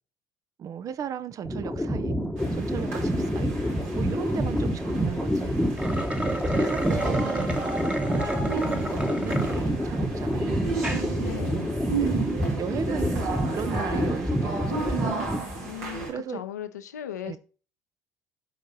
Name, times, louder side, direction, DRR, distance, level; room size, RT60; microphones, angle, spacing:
voice 1, 0.6-2.2 2.6-3.6 3.9-5.7 6.3-7.7 8.0-10.7 11.9-12.1 12.6-15.1 16.1-16.4 17.2-17.4, right 8 dB, 40° right, 0.7 m, -36 dB
sound 1, 1.4-15.7, equal, 5° left, 1.1 m, -28 dB
sound 2, 2.4-16.1, right 4 dB, 65° right, 2.5 m, -34 dB
sound 3, 5.7-9.6 10.1-10.2 10.7-11.0, right 1 dB, 15° right, 1.3 m, -32 dB
voice 2, 11.2-11.8 15.6-17.4, left 11 dB, 75° left, 0.7 m, -37 dB
11.5 x 4.7 x 4.1 m
figure-of-eight pair, 60°, 9 cm